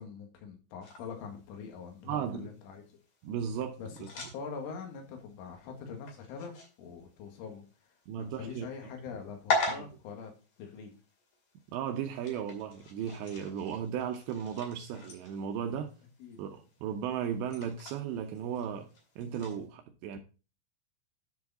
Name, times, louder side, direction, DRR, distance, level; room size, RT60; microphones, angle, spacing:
voice 1, 0.0-2.9 3.8-10.3 10.6-10.9 16.2-16.4, left 6 dB, 75° left, 4.2 m, -44 dB
sound 1, 0.8-19.6, left 3 dB, 50° left, 3.4 m, -42 dB
voice 2, 2.0-2.5 3.2-4.1 8.1-8.7 9.7-9.8 11.7-15.9 16.4-18.9 19.2-20.2, right 8 dB, 80° right, 2.6 m, -35 dB
10.5 x 5.0 x 4.1 m
omnidirectional pair, 5.7 m